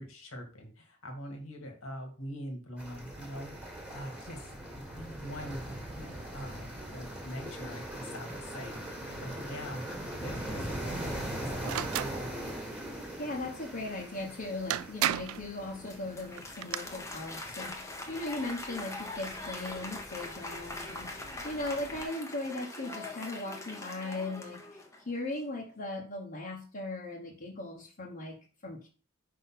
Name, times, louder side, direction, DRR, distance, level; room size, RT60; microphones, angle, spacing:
voice 1, 0.0-9.9 10.2-12.3, equal, 70° left, 3 dB, 1.9 m, -43 dB
sound 1, 2.8-22.0, right 1 dB, 5° right, 1.7 m, -42 dB
sound 2, 11.6-12.2 14.2-14.3 14.7-15.4 16.4-16.8, right 12 dB, 80° right, 0.3 m, -31 dB
voice 2, 12.9-28.9, left 2 dB, 45° left, -4 dB, 1.2 m, -38 dB
Applause, 15.6-25.2, left 2 dB, 15° left, 0.9 m, -42 dB
5.3 x 3.8 x 5.7 m, 0.37 s
head